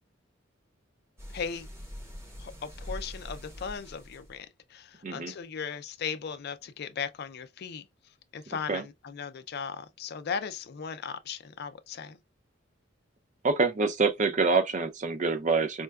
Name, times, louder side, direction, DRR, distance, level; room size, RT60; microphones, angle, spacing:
sound 1, 1.2-4.4, equal, 15° right, 0.8 m, -43 dB
voice 1, 1.3-1.7 2.4-7.9 8.3-12.2, left 6 dB, 55° left, 0.4 m, -37 dB
voice 2, 13.4-15.8, right 4 dB, 40° right, 0.5 m, -26 dB
4.4 x 2.2 x 2.2 m
head